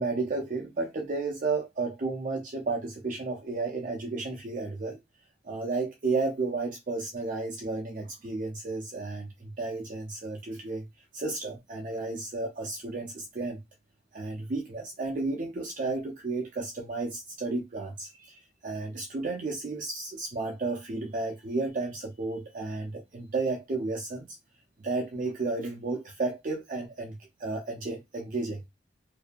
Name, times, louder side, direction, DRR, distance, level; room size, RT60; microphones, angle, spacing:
voice 1, 0.0-5.0 5.4-10.9 11.1-13.6 14.1-24.3 24.8-28.6, right 3 dB, 45° right, 0.4 m, -32 dB
2.6 x 2.4 x 2.2 m
head